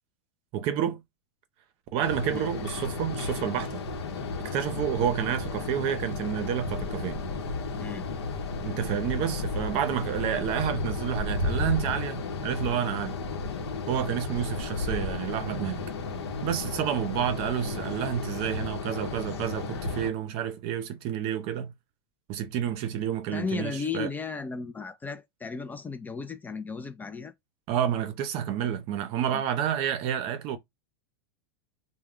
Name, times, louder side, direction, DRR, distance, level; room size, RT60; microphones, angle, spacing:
voice 1, 0.5-1.0 1.9-3.8 4.4-7.2 8.6-13.2 13.9-15.8 16.4-21.7 22.3-24.1 27.7-30.6, right 9 dB, 45° right, 0.6 m, -29 dB
sound 1, 2.0-20.1, left 3 dB, 85° left, 0.8 m, -33 dB
voice 2, 23.3-27.3 29.3-29.4, left 5 dB, 15° left, 0.3 m, -35 dB
2.3 x 2.1 x 3.5 m
hypercardioid pair, 115°, 13 cm